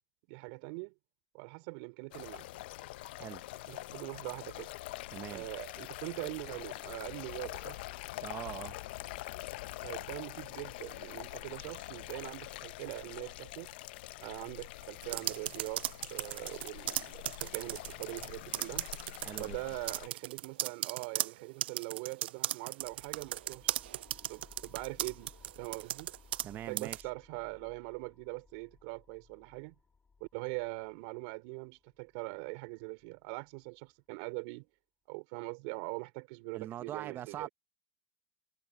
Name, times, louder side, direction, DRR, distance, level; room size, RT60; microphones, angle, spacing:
voice 1, 0.3-0.9 1.3-2.5 3.7-4.7 5.3-7.8 9.8-13.7 14.2-18.9 19.4-23.7 24.3-25.3 25.6-26.1 26.5-29.7 30.2-34.7 35.1-37.5, right 32 dB, 65° right, 4.8 m, -42 dB
sound 1, 2.1-20.1, left 18 dB, 75° left, 0.8 m, -45 dB
voice 2, 5.1-5.5 8.2-8.8 19.2-19.6 26.4-27.0 36.5-37.5, right 11 dB, 40° right, 1.3 m, -42 dB
sound 2, 15.0-18.3 18.5-19.5 19.9-26.5 26.8-27.0, right 14 dB, 80° right, 0.4 m, -36 dB
sound 3, 22.8-33.8, left 4 dB, 20° left, 6.0 m, -62 dB
hypercardioid pair, 100°, 6 cm